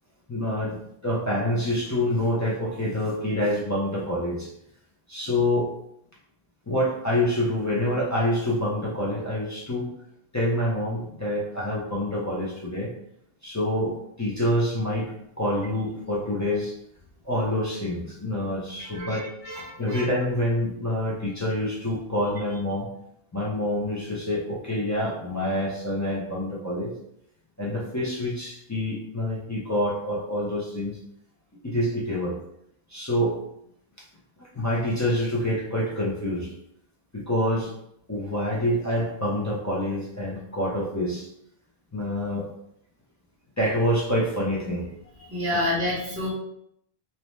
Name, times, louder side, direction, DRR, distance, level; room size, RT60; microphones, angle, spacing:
voice 1, 0.3-4.5 5.1-5.7 6.7-9.9 10.3-12.9 13.4-15.1 15.4-16.7 17.2-19.2 19.8-22.9 23.3-26.9 27.6-31.0 31.6-32.4 32.9-33.4 34.4-36.5 37.1-37.7 38.1-41.3 41.9-42.5 43.6-44.9, left 1 dB, 25° left, -5 dB, 0.4 m, -26 dB
voice 2, 18.9-20.0 45.2-46.3, left 1 dB, 15° right, -7 dB, 0.6 m, -29 dB
2.7 x 2.1 x 3.1 m, 0.74 s
omnidirectional pair, 1.1 m